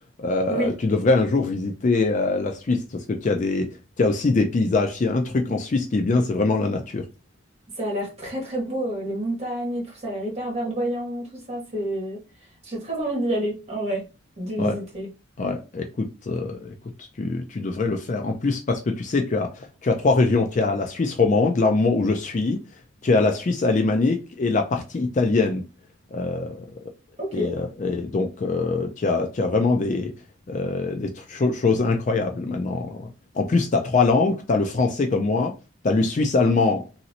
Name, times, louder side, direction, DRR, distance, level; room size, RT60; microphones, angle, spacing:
voice 1, 0.2-3.7 4.0-7.1 14.6-14.8 15.4-16.7 17.2-22.6 23.0-25.6 26.1-26.7 27.3-30.1 30.5-33.1 33.3-35.5 35.8-36.8, left 3 dB, 35° left, 0.3 m, -23 dB
voice 2, 7.8-12.2 12.7-14.0 14.4-15.1 27.2-27.5, right 1 dB, 30° right, 1.5 m, -28 dB
3.0 x 2.7 x 2.7 m
head